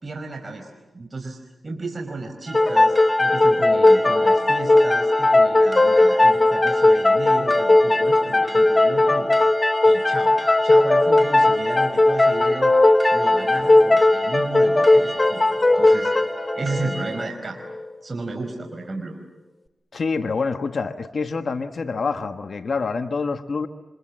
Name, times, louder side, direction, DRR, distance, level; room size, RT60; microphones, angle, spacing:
voice 1, 0.0-1.4 1.6-9.3 9.8-10.4 10.6-12.7 13.1-16.1 16.5-17.6 18.0-19.1, right 3 dB, 40° right, 3 dB, 5.1 m, -33 dB
sound 1, 2.5-17.9, left 2 dB, 35° left, 1.5 m, -17 dB
sound 2, 2.5-17.3, right 1 dB, 20° right, 2.1 m, -34 dB
voice 2, 19.9-23.7, left 4 dB, 65° left, 7 dB, 1.4 m, -26 dB
29.5 x 26.5 x 7.6 m, 1.1 s
cardioid pair, 55°, 0 cm